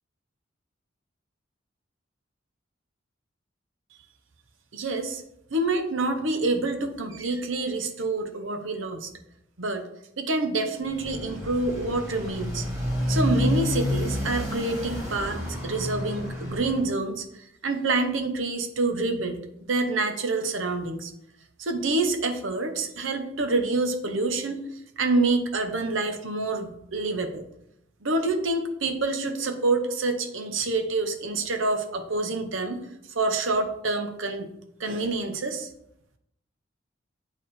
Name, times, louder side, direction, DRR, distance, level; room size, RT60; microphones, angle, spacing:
voice 1, 4.7-5.2 5.5-9.1 9.6-9.8 10.2-12.7 13.1-21.1 21.6-24.6 25.0-27.4 28.0-32.8 33.1-34.5 34.8-35.7, right 2 dB, 85° right, 6 dB, 0.8 m, -27 dB
Motorcycle, 10.8-16.8, left 1 dB, 15° right, 2.0 m, -29 dB
8.7 x 3.5 x 4.2 m, 0.77 s
head